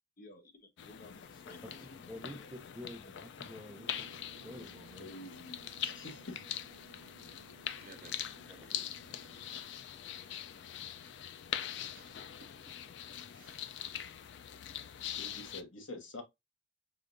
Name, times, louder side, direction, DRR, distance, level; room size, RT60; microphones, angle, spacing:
voice 1, 0.2-2.0 2.3-2.5 3.0-3.1, left 2 dB, 50° left, 0.8 m, -55 dB
sound 1, 0.8-15.6, left 10 dB, 70° left, 0.4 m, -43 dB
voice 2, 2.1-2.4 2.7-4.1 4.4-5.1 8.5-8.9, left 1 dB, 5° right, 0.6 m, -49 dB
sound 2, 3.8-9.6, right 7 dB, 90° right, 0.8 m, -60 dB
voice 3, 5.0-6.4 15.2-16.2, left 2 dB, 85° left, 1.2 m, -47 dB
voice 4, 7.8-8.3 9.3-9.5 11.6-12.3 13.3-13.8 14.2-14.3, right 4 dB, 50° right, 0.8 m, -60 dB
4.9 x 2.5 x 2.5 m
head